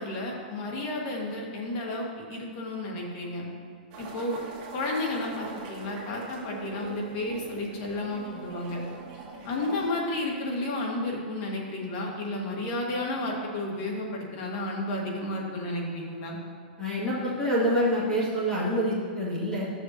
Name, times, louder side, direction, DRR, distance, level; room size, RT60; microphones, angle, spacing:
voice 1, 0.0-3.4 4.0-4.4 4.7-8.8 9.4-16.4, left 2 dB, 40° left, -2 dB, 1.9 m, -32 dB
sound 1, 3.9-9.9, right 3 dB, 40° right, 1.9 m, -42 dB
voice 2, 16.8-19.6, equal, 15° left, -9 dB, 2.1 m, -26 dB
13.5 x 6.7 x 2.9 m, 2.1 s
hypercardioid pair, 150°, 5 cm